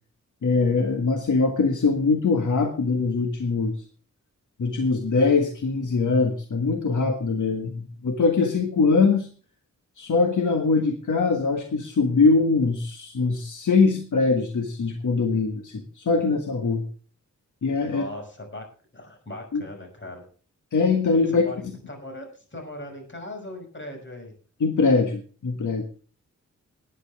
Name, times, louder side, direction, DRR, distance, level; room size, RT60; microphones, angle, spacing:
voice 1, 0.4-3.8 4.6-9.3 10.0-16.8 17.6-18.1 19.5-19.6 20.7-21.5 24.6-25.8, left 4 dB, 75° left, 5 dB, 1.7 m, -22 dB
voice 2, 17.8-18.6 18.9-20.3 21.3-24.3, left 1 dB, 40° left, 3 dB, 5.9 m, -39 dB
19.0 x 9.7 x 3.5 m, 0.39 s
wide cardioid pair, 115°, 31 cm